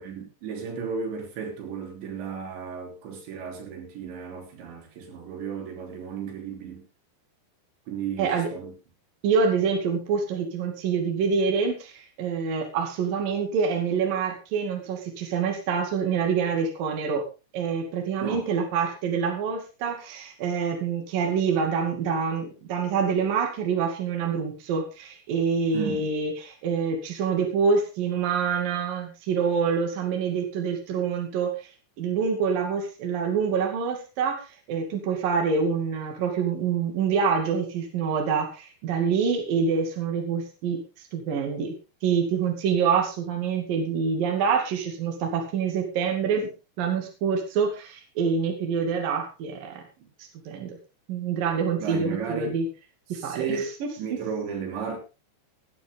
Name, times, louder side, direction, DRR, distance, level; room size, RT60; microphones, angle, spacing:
voice 1, 0.0-6.8 7.9-8.7 18.2-18.4 25.7-26.1 51.8-52.6 53.1-53.7 54.0-55.0, right 6 dB, 80° right, 3 dB, 5.6 m, -34 dB
voice 2, 8.2-8.5 9.2-17.2 17.5-31.5 32.0-40.8 41.1-41.7 42.0-46.5 46.8-49.8 50.5-50.8 51.1-52.7 53.1-53.9, right 6 dB, 55° right, 3 dB, 3.9 m, -26 dB
17.0 x 11.5 x 3.8 m, 0.30 s
omnidirectional pair, 5.1 m